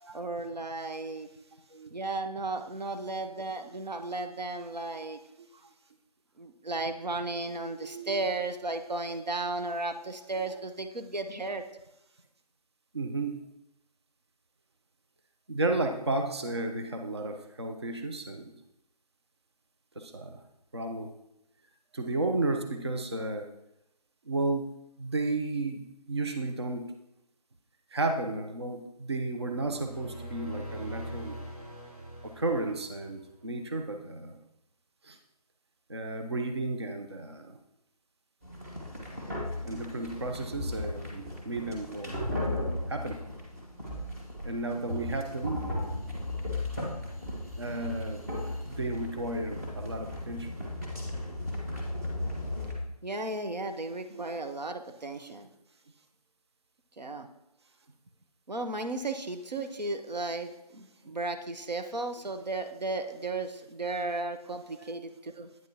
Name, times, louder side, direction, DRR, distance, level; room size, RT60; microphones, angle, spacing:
voice 1, 0.1-1.3 1.9-5.2 6.4-11.6 53.0-55.5 57.0-57.3 58.5-65.5, right 2 dB, 90° right, 7 dB, 0.8 m, -34 dB
voice 2, 7.8-8.2 12.9-13.4 15.5-18.5 20.0-20.4 20.7-21.1 21.9-23.5 24.3-26.9 27.9-31.4 32.2-34.4 35.0-35.2 35.9-37.6 39.6-42.2 42.9-43.2 44.4-45.7 47.6-50.5 54.1-54.4 55.2-55.3 64.7-65.0, right 2 dB, 40° right, 5 dB, 0.5 m, -33 dB
sound 1, 29.5-33.3, right 1 dB, 60° right, 2.2 m, -42 dB
sound 2, 38.4-52.7, left 1 dB, 25° right, 1.2 m, -36 dB
8.9 x 5.9 x 2.8 m, 0.86 s
figure-of-eight pair, 170°, 21 cm